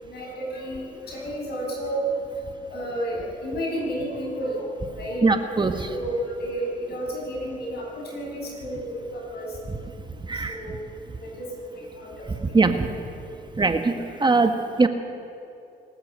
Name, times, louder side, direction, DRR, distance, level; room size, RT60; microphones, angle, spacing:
voice 1, 0.0-2.0 2.7-5.3 5.9-9.6 10.5-10.8 11.2-11.5 11.8-12.5, equal, 65° left, -1 dB, 6.9 m, -32 dB
voice 2, 5.2-5.9 9.7-9.8 10.3-10.6 12.4-12.9 13.6-14.9, right 3 dB, 25° right, 6 dB, 1.5 m, -21 dB
25.0 x 13.0 x 8.1 m, 2.7 s
cardioid pair, 75°, 18 cm